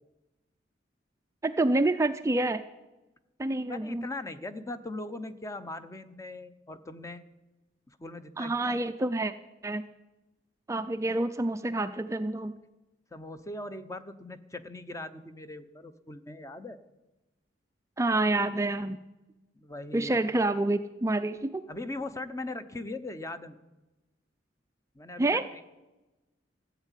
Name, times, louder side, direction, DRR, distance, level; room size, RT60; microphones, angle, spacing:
voice 1, 1.4-2.6 3.4-4.1 8.4-9.3 9.6-9.8 10.7-12.5 18.0-19.0 19.9-21.6 25.2-25.6, right 2 dB, 15° right, 9 dB, 0.4 m, -28 dB
voice 2, 3.7-7.2 7.9-8.8 13.1-16.8 19.5-20.2 21.7-23.6 24.9-25.6, left 2 dB, 15° left, 11 dB, 0.7 m, -40 dB
15.0 x 8.1 x 9.1 m, 1.1 s
head